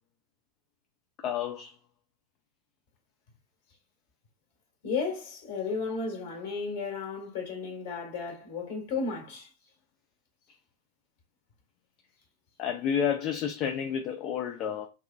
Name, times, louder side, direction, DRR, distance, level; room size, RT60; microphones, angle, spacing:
voice 1, 1.2-1.8 12.6-14.9, left 8 dB, 35° left, 0.4 m, -30 dB
voice 2, 4.8-9.5, left 4 dB, 55° left, 1.9 m, -34 dB
5.4 x 3.0 x 2.4 m
figure-of-eight pair, 90°, 0 cm